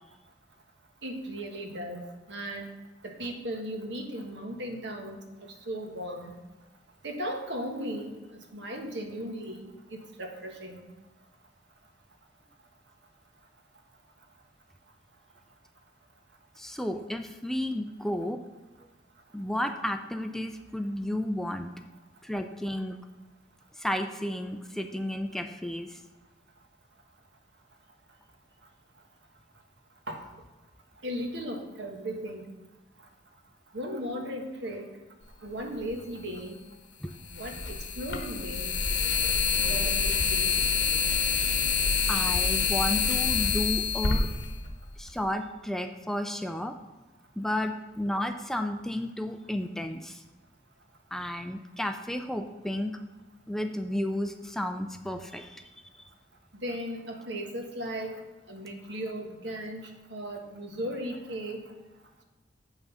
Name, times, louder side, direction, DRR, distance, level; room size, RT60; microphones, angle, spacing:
voice 1, 1.0-2.7 3.0-5.2 5.7-6.3 7.0-8.1 8.5-10.9 30.1-30.2 31.0-32.5 33.7-34.9 35.4-36.6 37.3-38.7 39.6-40.5 56.6-58.2 58.5-61.7, equal, 75° right, 3 dB, 1.4 m, -36 dB
voice 2, 16.6-18.4 19.3-21.7 22.2-23.0 23.8-26.0 37.0-37.1 41.4-41.5 42.1-44.3 45.0-46.7 47.4-50.2 51.1-53.0 53.5-55.6 55.9-56.0, left 1 dB, ahead, 6 dB, 0.4 m, -32 dB
sound 1, 35.8-35.9 37.3-45.2, left 5 dB, 70° left, 1.1 m, -27 dB
7.8 x 5.8 x 5.5 m, 1.1 s
head